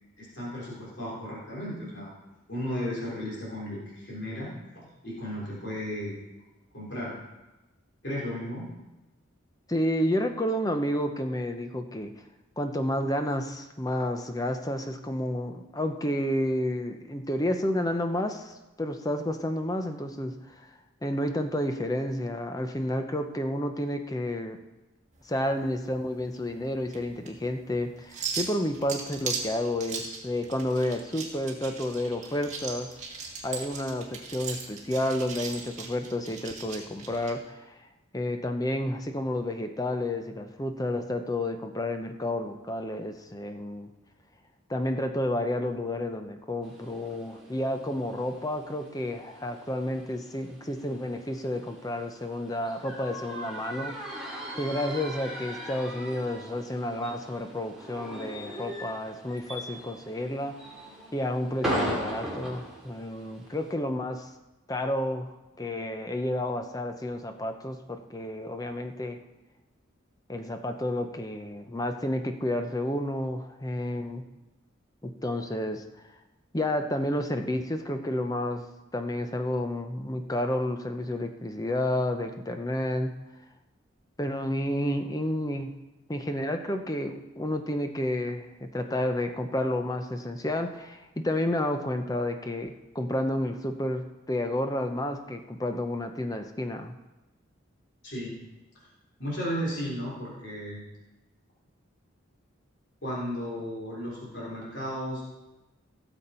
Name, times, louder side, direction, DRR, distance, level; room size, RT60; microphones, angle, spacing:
voice 1, 0.2-2.1 2.5-6.2 6.7-7.1 8.0-8.7 98.0-98.3 99.2-100.8 103.0-105.2, equal, 55° left, -6 dB, 3.6 m, -34 dB
voice 2, 9.7-12.1 12.6-20.7 21.0-24.6 25.2-33.0 33.4-37.9 38.1-43.9 44.7-54.0 54.5-60.6 61.1-64.3 64.7-69.2 70.3-74.2 75.0-75.8 76.5-78.7 78.9-83.1 84.2-85.7 86.1-97.0, left 1 dB, 20° left, 6 dB, 0.7 m, -30 dB
sound 1, 25.1-37.3, right 5 dB, 35° right, 1.8 m, -39 dB
sound 2, 46.6-63.7, equal, ahead, 2.4 m, -39 dB
16.5 x 7.1 x 4.4 m, 1.0 s
head